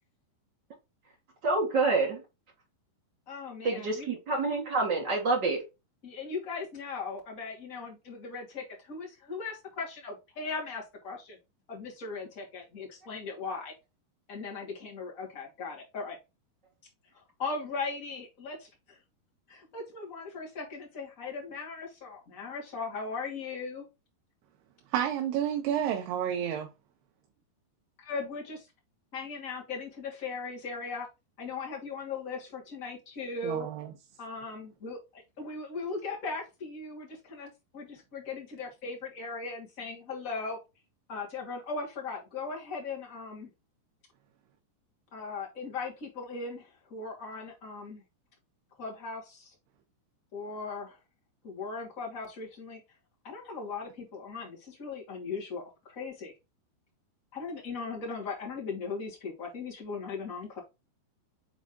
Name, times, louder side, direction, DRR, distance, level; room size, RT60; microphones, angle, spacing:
voice 1, 1.4-2.2 3.6-5.6, right 3 dB, 55° right, 1.2 m, -27 dB
voice 2, 3.3-4.1 6.0-11.4 11.7-13.7 14.3-16.2 17.1-19.0 19.5-23.8 28.0-28.7 29.1-31.1 31.4-33.7 34.2-40.6 41.1-43.5 45.1-48.0 48.8-49.5 50.3-51.0 51.4-52.8 53.2-56.3 57.3-60.6, left 4 dB, 25° left, 2.3 m, -38 dB
voice 3, 24.9-26.7 33.4-33.9, right 9 dB, 80° right, 2.8 m, -30 dB
7.2 x 4.1 x 3.7 m
omnidirectional pair, 4.8 m